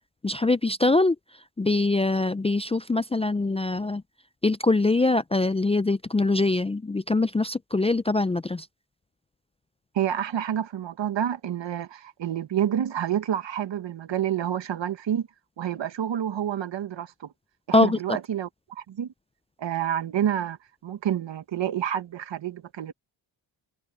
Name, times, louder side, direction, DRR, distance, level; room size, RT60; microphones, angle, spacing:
voice 1, 0.2-1.2 1.6-4.0 4.4-8.7 17.7-18.2, left 2 dB, 15° left, 0.4 m, -23 dB
voice 2, 9.9-15.3 15.6-17.3 17.7-19.1 19.6-20.6 20.8-22.9, right 10 dB, 70° right, 1.6 m, -28 dB
cardioid pair, 100°, 46 cm